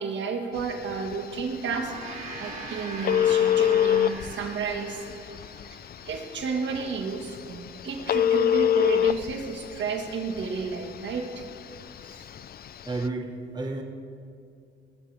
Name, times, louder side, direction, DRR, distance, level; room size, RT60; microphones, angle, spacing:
voice 1, 0.0-5.0 5.7-5.8 6.1-11.3 12.0-12.3, right 5 dB, 65° right, 3 dB, 1.9 m, -32 dB
Telephone, 0.6-13.1, left 10 dB, 50° left, 0.5 m, -28 dB
Gong, 1.5-6.2, right 3 dB, 40° right, 2.7 m, -41 dB
voice 2, 12.9-13.8, right 2 dB, 20° right, 3 dB, 1.5 m, -31 dB
19.5 x 15.5 x 3.5 m, 2.4 s
cardioid pair, 90°, 20 cm